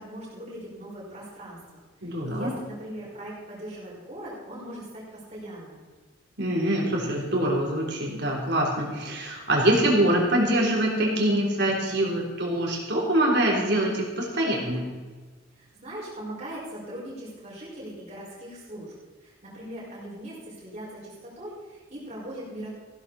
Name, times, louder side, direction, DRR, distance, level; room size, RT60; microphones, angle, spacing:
voice 1, 0.0-5.8 15.5-18.9 19.2-22.7, right 1 dB, 35° right, -6 dB, 5.4 m, -40 dB
voice 2, 2.0-2.5 6.4-15.0, right 1 dB, 55° right, -1 dB, 3.4 m, -24 dB
15.5 x 12.0 x 4.3 m, 1.3 s
head